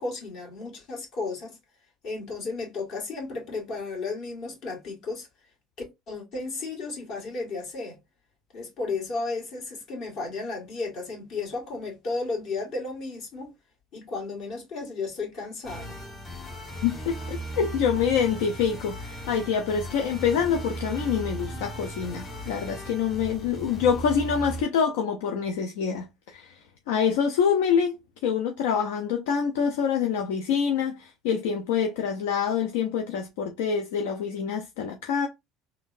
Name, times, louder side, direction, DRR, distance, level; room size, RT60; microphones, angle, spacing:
voice 1, 0.0-1.6 2.0-5.3 6.1-8.0 8.5-13.5 13.9-16.0, left 3 dB, 60° left, 1.7 m, -33 dB
sound 1, 15.6-24.6, right 1 dB, 35° left, 1.6 m, -37 dB
voice 2, 16.8-27.9 28.2-35.3, left 7 dB, 85° left, 0.4 m, -26 dB
3.7 x 2.2 x 2.4 m
supercardioid pair, 85°, 0 cm